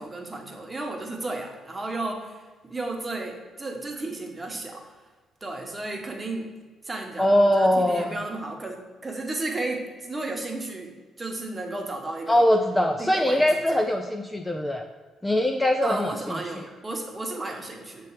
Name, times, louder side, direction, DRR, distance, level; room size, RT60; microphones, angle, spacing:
voice 1, 0.0-4.8 5.4-6.5 6.8-12.5 13.0-13.8 15.8-18.1, right 2 dB, 20° right, 2 dB, 1.0 m, -33 dB
voice 2, 7.2-8.2 12.3-14.8 15.2-16.1, left 1 dB, 10° left, 4 dB, 0.4 m, -22 dB
6.8 x 3.1 x 4.6 m, 1.4 s
cardioid pair, 90°, 0 cm